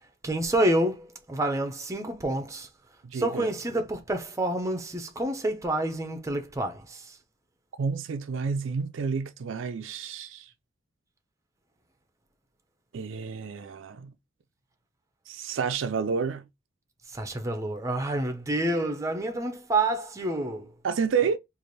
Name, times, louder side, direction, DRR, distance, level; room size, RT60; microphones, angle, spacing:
voice 1, 0.2-2.7 3.1-7.1 17.1-20.7, right 1 dB, 15° right, 0.6 m, -28 dB
voice 2, 3.0-3.5 7.8-10.5 12.9-14.1 15.3-16.4 20.8-21.4, right 5 dB, 70° right, 0.4 m, -30 dB
3.2 x 2.5 x 3.9 m
head